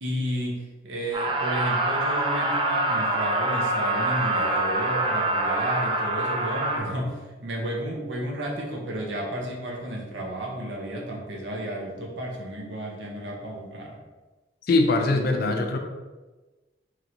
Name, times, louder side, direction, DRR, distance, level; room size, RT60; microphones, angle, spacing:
voice 1, 0.0-14.0, right 1 dB, 85° right, -1 dB, 0.7 m, -32 dB
sound 1, 1.1-6.8, right 2 dB, 30° right, 0.3 m, -25 dB
voice 2, 14.7-15.8, left 2 dB, 55° left, 4 dB, 0.4 m, -22 dB
3.0 x 2.9 x 2.6 m, 1.2 s
head